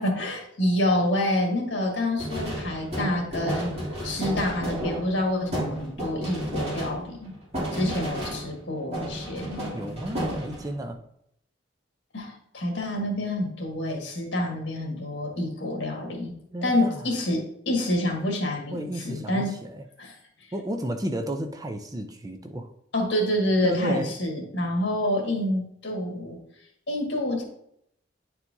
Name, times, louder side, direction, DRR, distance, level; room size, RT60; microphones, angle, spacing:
voice 1, 0.0-3.7 4.0-7.3 7.7-9.7 12.1-16.4 16.6-19.6 20.0-20.2 22.9-26.4 26.9-27.4, left 1 dB, 70° left, 1 dB, 1.8 m, -27 dB
sound 1, 2.2-8.7 8.9-10.8, equal, 35° right, 2.7 m, -32 dB
voice 2, 9.7-11.0 16.5-17.1 18.7-19.8 20.5-22.7 23.6-24.1, right 1 dB, 20° right, 5 dB, 0.5 m, -32 dB
9.8 x 4.5 x 2.7 m, 0.72 s
head